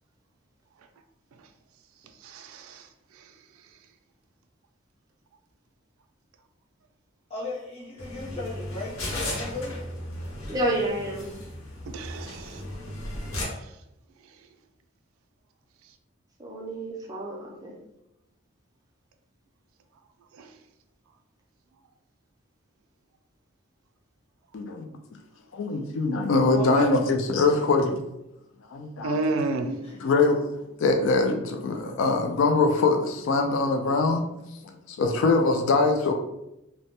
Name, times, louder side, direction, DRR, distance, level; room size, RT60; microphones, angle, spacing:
voice 1, 2.2-2.9 3.2-3.3 11.9-12.6 20.4-20.5 29.0-29.7, right 3 dB, 90° right, 7 dB, 0.3 m, -30 dB
voice 2, 7.3-9.8 26.5-27.1 29.8-30.1, left 2 dB, 30° left, -5 dB, 0.6 m, -37 dB
sound 1, 8.0-13.4, left 1 dB, 85° left, 0.7 m, -35 dB
voice 3, 10.5-11.3 16.4-17.7, right 1 dB, 20° right, -3 dB, 0.4 m, -29 dB
voice 4, 24.5-24.9 25.5-28.0 28.7-29.2 29.6-30.4 30.8-34.2 34.9-36.1, left 3 dB, 65° left, 4 dB, 0.3 m, -23 dB
2.1 x 2.0 x 2.8 m, 0.88 s
head